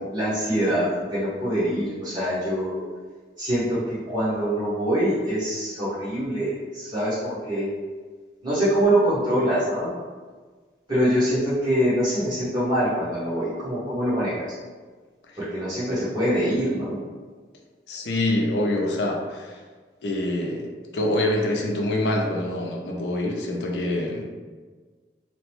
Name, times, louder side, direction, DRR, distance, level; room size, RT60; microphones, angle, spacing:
voice 1, 0.0-2.8 3.4-7.7 8.4-9.9 10.9-14.5 15.4-17.0, equal, 25° right, -11 dB, 1.1 m, -24 dB
voice 2, 17.9-19.6 20.0-24.3, left 1 dB, 80° left, 0 dB, 0.5 m, -25 dB
2.9 x 2.1 x 3.0 m, 1.4 s
head